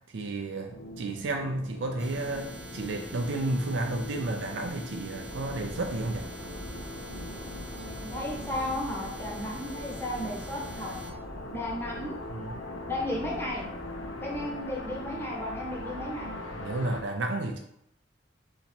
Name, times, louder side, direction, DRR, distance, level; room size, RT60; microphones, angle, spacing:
voice 1, 0.1-6.3 12.3-12.5 16.5-17.6, right 2 dB, 65° right, 3 dB, 0.4 m, -32 dB
sound 1, 0.7-17.0, left 1 dB, 80° left, 0.7 m, -42 dB
sound 2, 2.0-11.1, equal, 5° right, 0.5 m, -44 dB
sound 3, 5.2-17.1, equal, 35° right, 1.0 m, -45 dB
voice 2, 8.0-10.9 11.5-12.2 12.9-13.6 14.2-16.3, left 1 dB, 15° left, -3 dB, 1.0 m, -34 dB
4.1 x 2.9 x 4.3 m, 0.75 s
head